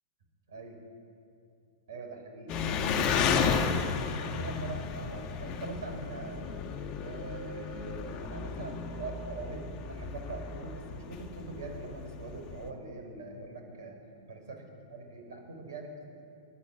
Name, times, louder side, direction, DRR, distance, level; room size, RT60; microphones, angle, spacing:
voice 1, 0.5-0.8 1.9-6.4 7.0-14.0 14.3-16.1, right 3 dB, 65° right, 3 dB, 5.7 m, -43 dB
Engine, 2.5-12.7, left 6 dB, 35° left, 1.7 m, -33 dB
27.5 x 12.5 x 8.5 m, 2.5 s
figure-of-eight pair, 105°, 2 cm